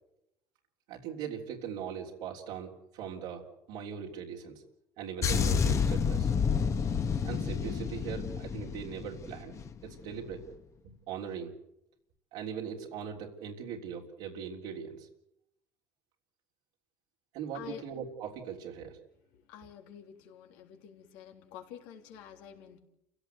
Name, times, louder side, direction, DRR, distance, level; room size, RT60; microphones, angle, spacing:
voice 1, 0.9-4.6 5.0-6.3 7.2-9.6 9.8-10.4 10.8-11.5 12.3-15.1 17.3-19.0, right 7 dB, 80° right, -2 dB, 3.5 m, -40 dB
sound 1, 5.2-9.8 10.0-10.3, left 6 dB, 40° left, 1.7 m, -29 dB
voice 2, 19.5-22.8, left 9 dB, 80° left, 4 dB, 3.4 m, -48 dB
29.0 x 16.5 x 8.1 m, 0.82 s
supercardioid pair, 90°, 8 cm